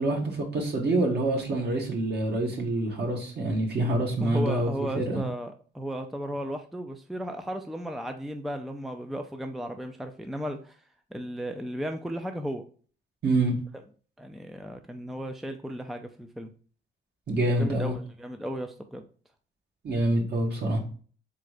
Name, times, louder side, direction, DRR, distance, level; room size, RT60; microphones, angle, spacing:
voice 1, 0.0-4.7 5.0-5.2 13.2-13.5 17.3-17.9 19.8-20.8, right 2 dB, 55° right, 1 dB, 1.8 m, -26 dB
voice 2, 4.2-10.8 11.1-12.6 14.2-16.5 17.5-19.0, equal, ahead, 6 dB, 0.5 m, -35 dB
3.8 x 3.7 x 3.3 m, 0.42 s
cardioid pair, 90°, 20 cm